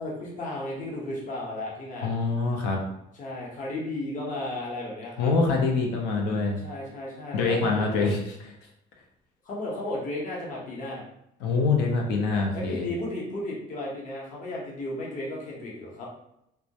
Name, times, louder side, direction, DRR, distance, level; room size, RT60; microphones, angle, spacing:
voice 1, 0.0-2.1 3.1-5.3 6.6-8.1 9.4-11.0 12.5-16.1, left 1 dB, 50° left, -4 dB, 0.8 m, -34 dB
voice 2, 2.0-2.8 5.2-6.6 7.3-8.2 11.4-12.9, left 4 dB, 90° left, 1 dB, 0.6 m, -24 dB
2.2 x 2.1 x 2.7 m, 0.79 s
cardioid pair, 110°, 17 cm